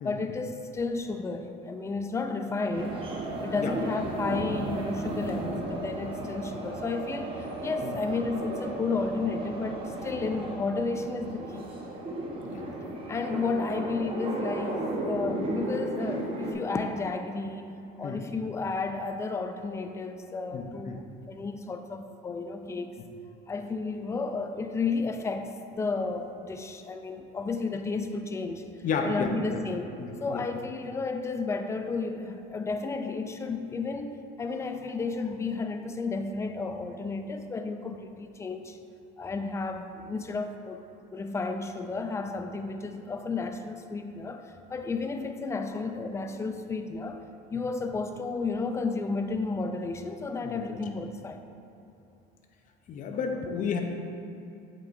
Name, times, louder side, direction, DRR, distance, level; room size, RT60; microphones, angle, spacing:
voice 1, 0.0-3.0 3.4-11.7 13.1-23.0 23.5-28.6 29.0-38.9 39.2-40.9 41.1-47.2 47.5-51.4, left 4 dB, 15° left, 7 dB, 0.4 m, -32 dB
sound 1, 2.7-16.5, right 2 dB, 30° right, 1.1 m, -34 dB
voice 2, 20.5-21.0 28.8-29.6 30.0-30.4 47.5-47.7 50.4-50.8 52.9-53.8, left 5 dB, 45° left, 4 dB, 0.8 m, -32 dB
8.2 x 7.5 x 2.6 m, 2.7 s
cardioid pair, 130°, 19 cm